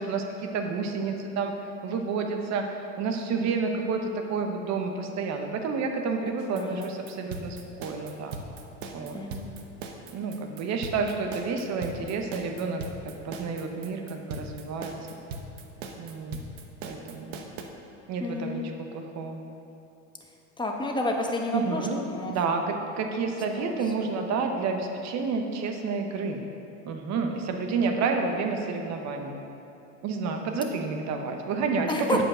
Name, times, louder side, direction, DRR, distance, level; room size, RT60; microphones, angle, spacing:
voice 1, 0.0-1.5 1.8-2.7 3.0-8.4 8.9-9.2 10.1-12.8 13.2-14.9 16.0-16.4 16.8-17.3 18.1-18.6 18.9-19.4 21.5-22.0 22.3-26.4 26.8-29.4 30.0-32.2, right 4 dB, 45° right, 4 dB, 1.1 m, -30 dB
sound 1, 6.4-17.6, right 4 dB, 80° right, 1.1 m, -39 dB
voice 2, 6.5-6.9 9.1-9.5 18.2-18.6 20.6-21.8 22.1-22.3 23.3-23.8 31.9-32.2, left 2 dB, 10° left, 1 dB, 1.1 m, -30 dB
8.5 x 5.1 x 6.3 m, 2.8 s
hypercardioid pair, 100°, 38 cm